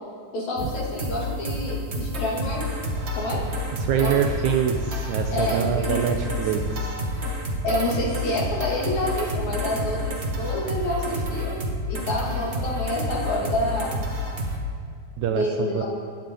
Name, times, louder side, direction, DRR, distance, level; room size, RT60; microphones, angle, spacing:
voice 1, 0.3-2.6 3.2-3.4 3.9-4.2 5.3-6.3 7.6-11.6 11.9-13.9 15.3-15.8, left 1 dB, 55° left, -4 dB, 3.7 m, -28 dB
sound 1, 0.6-14.6, equal, 50° right, 0.7 m, -29 dB
voice 2, 3.8-7.0 15.2-15.8, right 8 dB, 75° right, 4 dB, 1.9 m, -25 dB
24.5 x 10.5 x 3.8 m, 2.2 s
omnidirectional pair, 4.0 m